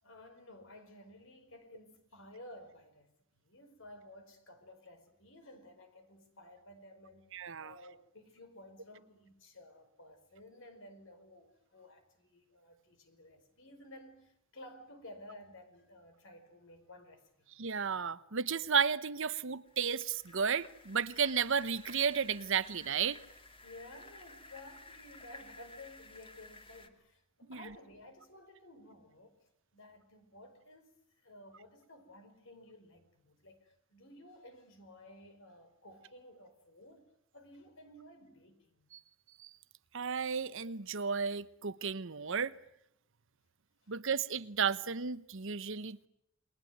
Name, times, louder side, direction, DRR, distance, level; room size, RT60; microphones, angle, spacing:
voice 1, 0.0-7.3 7.6-17.5 23.6-29.4 29.7-37.0 37.3-38.9 43.8-43.9, left 1 dB, 65° left, 5.1 m, -55 dB
voice 2, 7.3-7.7 17.6-23.2 27.5-27.6 38.9-39.0 39.4-39.5 39.9-42.5 43.9-46.1, right 6 dB, 65° right, 1.0 m, -33 dB
sound 1, 19.7-26.9, left 2 dB, 25° left, 2.5 m, -54 dB
29.0 x 21.5 x 9.4 m
head